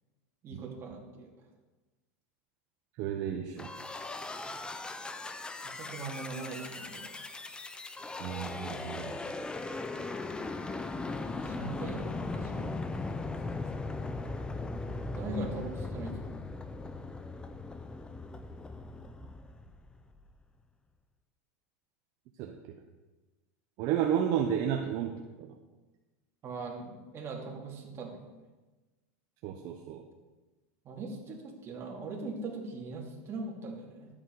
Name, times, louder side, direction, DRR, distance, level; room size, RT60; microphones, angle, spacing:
voice 1, 0.4-1.3 4.4-4.5 5.6-7.1 11.3-12.8 15.1-16.4 26.4-28.2 30.8-34.1, right 3 dB, 30° right, -1 dB, 2.7 m, -41 dB
voice 2, 3.0-3.7 8.2-9.2 22.4-22.8 23.8-25.5 29.4-30.0, right 9 dB, 50° right, 2 dB, 1.0 m, -32 dB
sound 1, 3.6-20.2, left 3 dB, 10° left, 0.7 m, -38 dB
12.5 x 8.6 x 4.9 m, 1.2 s
supercardioid pair, 135°, 8 cm